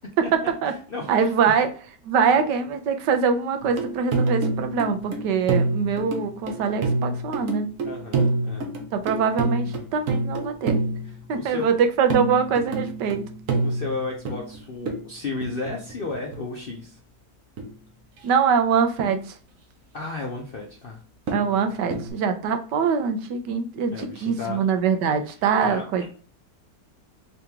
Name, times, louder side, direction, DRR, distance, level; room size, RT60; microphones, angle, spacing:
voice 1, 0.2-0.7 1.1-1.7 2.0-7.7 8.9-10.8 11.3-13.2 18.2-19.4 21.3-26.1, right 6 dB, 85° right, 7 dB, 1.3 m, -23 dB
voice 2, 0.9-1.5 7.8-8.7 11.0-11.7 13.6-17.0 19.9-21.0 23.9-24.6 25.3-25.8, left 3 dB, 60° left, 0 dB, 0.5 m, -34 dB
sound 1, 3.6-16.9 17.6-18.2 19.0-19.1 21.3-22.1, right 3 dB, 60° right, 1.1 m, -28 dB
3.8 x 2.9 x 3.5 m, 0.41 s
omnidirectional pair, 1.8 m